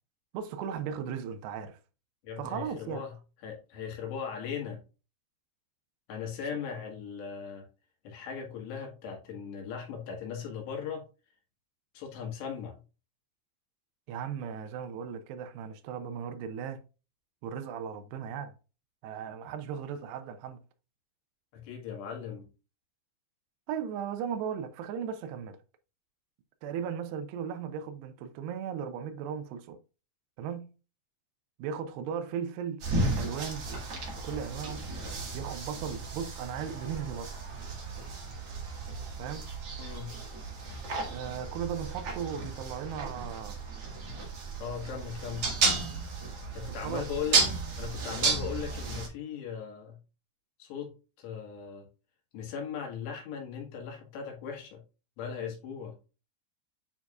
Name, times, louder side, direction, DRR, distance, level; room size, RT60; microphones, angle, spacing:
voice 1, 0.3-1.8 2.4-3.0 14.1-16.8 17.4-18.5 19.0-20.6 23.7-25.6 26.6-29.8 30.4-30.7 31.6-32.8 33.2-33.7 34.1-34.8 35.3-37.4 39.1-39.5 41.1-43.6 46.8-47.1, right 7 dB, 80° right, 2.6 m, -37 dB
voice 2, 2.2-3.1 3.4-4.8 6.1-7.7 8.1-11.1 12.0-12.8 21.5-22.5 39.8-40.2 44.6-45.5 46.6-47.5 47.8-50.0 50.6-51.9 52.3-54.8 55.2-55.9, left 7 dB, 70° left, 3.6 m, -38 dB
sound 1, 32.8-49.1, right 3 dB, 50° right, 1.7 m, -33 dB
9.5 x 4.4 x 2.4 m
omnidirectional pair, 5.5 m